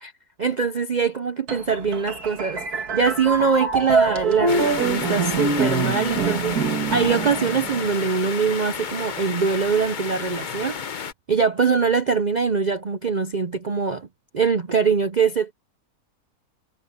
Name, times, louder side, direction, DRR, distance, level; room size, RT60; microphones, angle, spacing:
voice 1, 0.4-2.6 2.9-6.6 6.9-10.8 11.3-14.1 14.3-15.5, right 5 dB, 50° right, 0.5 m, -23 dB
sound 1, 1.5-8.2, right 4 dB, 85° right, 2.3 m, -25 dB
sound 2, 4.5-11.1, left 6 dB, 40° left, 0.8 m, -31 dB
omnidirectional pair, 1.6 m